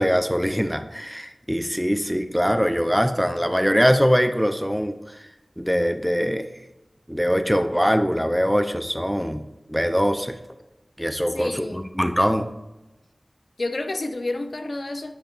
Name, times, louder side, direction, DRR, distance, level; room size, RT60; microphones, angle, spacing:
voice 1, 0.0-5.3 5.6-6.5 7.1-9.4 9.7-10.3 11.0-12.5, equal, ahead, 8 dB, 0.5 m, -22 dB
voice 2, 11.3-11.9 13.6-15.2, left 2 dB, 65° left, 7 dB, 0.6 m, -30 dB
10.5 x 5.1 x 2.4 m, 1.0 s
wide cardioid pair, 60°, 0 cm